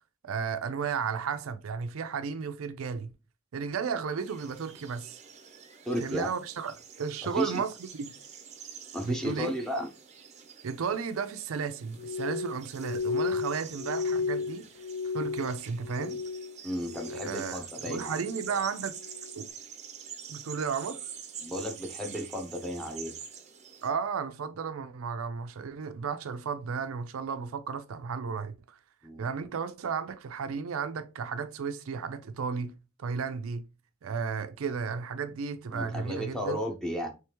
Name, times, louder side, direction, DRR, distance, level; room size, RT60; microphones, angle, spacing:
voice 1, 0.2-3.1 3.5-5.2 6.0-7.7 8.0-8.1 9.0-9.5 10.6-14.7 15.1-16.2 17.1-19.0 19.3-19.5 20.3-21.0 23.8-28.8 29.2-32.7 33.0-33.6 34.0-36.6, right 6 dB, 80° right, 0.4 m, -34 dB
sound 1, 4.2-23.9, right 7 dB, 35° right, 0.6 m, -46 dB
voice 2, 5.9-6.3 7.2-7.6 8.9-9.9 16.6-18.6 21.4-23.1 29.0-29.3 35.7-37.1, equal, 5° left, 0.8 m, -34 dB
Glass, 12.0-16.6 16.8-17.5 17.9-18.4 19.0-19.3, left 5 dB, 60° left, 0.4 m, -34 dB
3.4 x 3.2 x 2.9 m
head